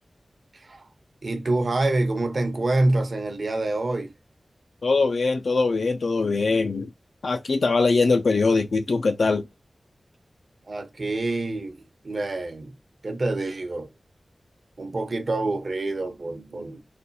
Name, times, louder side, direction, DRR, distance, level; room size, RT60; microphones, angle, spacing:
voice 1, 0.5-0.9 1.2-4.1 10.7-12.7 13.0-13.9 14.8-16.8, right 2 dB, 65° right, 0.8 m, -26 dB
voice 2, 4.8-6.9 7.2-9.4, left 3 dB, 80° left, 0.3 m, -22 dB
4.1 x 2.2 x 2.7 m
cardioid pair, 45°, 0 cm